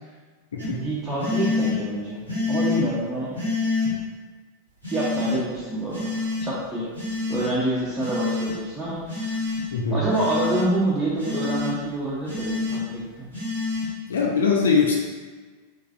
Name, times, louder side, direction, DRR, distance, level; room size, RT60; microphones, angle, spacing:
sound 1, 0.6-0.7 1.2-1.7 2.3-2.8 3.3-3.9 4.8-5.3 5.9-6.4 6.9-7.5 8.0-8.5 9.1-9.6 10.1-10.6 11.2-11.7 12.3-12.8 13.3-13.8, left 3 dB, 80° right, 1.2 m, -27 dB
voice 1, 0.7-2.2 2.5-3.4 4.9-6.1 6.4-6.9 7.3-9.4 9.9-13.3, right 1 dB, 15° right, -9 dB, 0.6 m, -27 dB
voice 2, 14.1-15.0, left 5 dB, 65° left, -1 dB, 0.3 m, -20 dB
3.0 x 2.4 x 2.5 m, 1.4 s
figure-of-eight pair, 90°, 0 cm